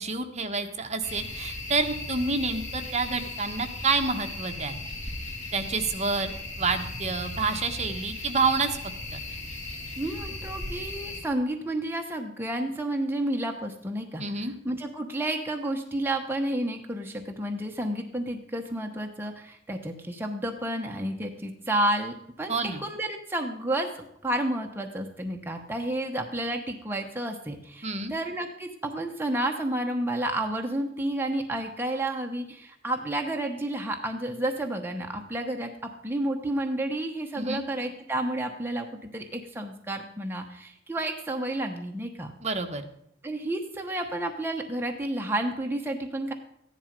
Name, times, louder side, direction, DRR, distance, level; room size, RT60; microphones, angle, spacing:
voice 1, 0.0-4.8 5.5-8.8 9.1-9.2 14.2-14.5 22.5-22.8 27.8-28.1 37.4-37.6 42.4-42.8, right 4 dB, 35° right, 6 dB, 1.3 m, -28 dB
sound 1, 1.0-11.2, left 2 dB, 35° left, 3.6 m, -37 dB
voice 2, 10.0-14.2 14.6-22.5 22.8-42.3 43.2-46.3, right 1 dB, 10° right, 2 dB, 1.0 m, -31 dB
14.5 x 10.5 x 5.2 m, 0.74 s
head